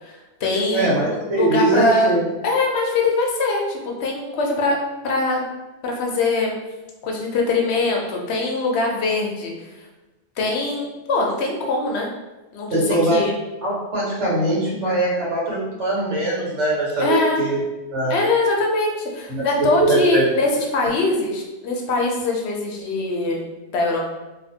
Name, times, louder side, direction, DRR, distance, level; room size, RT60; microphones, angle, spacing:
voice 1, 0.0-2.1 2.4-5.5 5.8-6.6 7.0-9.5 10.4-12.1 12.5-13.3 17.0-17.4 18.1-23.4 23.7-24.0, left 3 dB, 70° left, 0 dB, 0.8 m, -22 dB
voice 2, 0.7-2.2 12.7-13.2 13.6-17.6 17.9-18.1 19.3-20.2, right 2 dB, 85° right, -6 dB, 1.3 m, -21 dB
2.6 x 2.5 x 2.7 m, 1.1 s
omnidirectional pair, 1.2 m